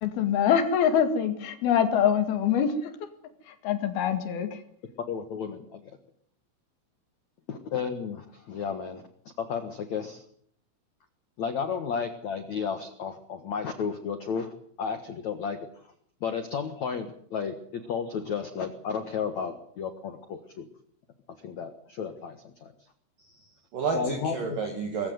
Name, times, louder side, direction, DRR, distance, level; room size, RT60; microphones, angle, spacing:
voice 1, 0.0-2.7 3.6-4.5, left 8 dB, 55° left, 8 dB, 3.6 m, -24 dB
voice 2, 5.1-6.0 7.5-9.0 9.4-10.2 11.4-15.6 16.2-20.7 21.4-22.7 23.9-24.6, left 6 dB, 75° left, 8 dB, 1.6 m, -33 dB
voice 3, 23.2-25.1, right 5 dB, 50° right, 3 dB, 3.3 m, -31 dB
22.0 x 15.0 x 9.5 m, 0.64 s
omnidirectional pair, 5.8 m